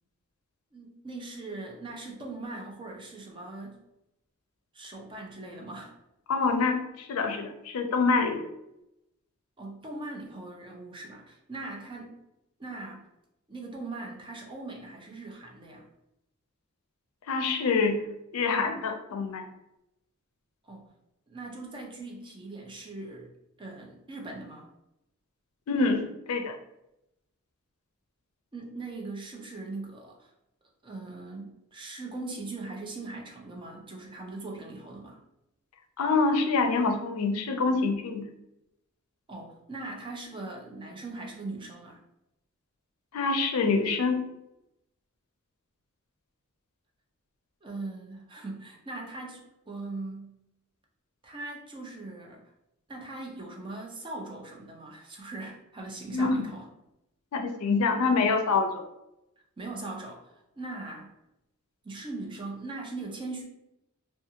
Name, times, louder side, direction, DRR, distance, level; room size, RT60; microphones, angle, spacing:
voice 1, 0.7-3.8 4.7-5.9 9.6-12.2 12.6-13.0 13.5-15.9 20.6-20.9 21.3-23.3 23.6-24.7 28.5-30.3 30.8-35.2 39.3-42.0 47.6-50.3 51.2-52.4 52.9-56.7 59.6-61.1 61.8-63.4, right 2 dB, 25° right, -1 dB, 0.5 m, -40 dB
voice 2, 6.3-8.4 17.3-18.0 18.3-19.4 25.7-26.6 36.0-38.2 43.1-44.2 56.1-56.5 57.3-58.8, left 4 dB, 85° left, 5 dB, 0.4 m, -26 dB
2.5 x 2.4 x 2.8 m, 0.86 s
head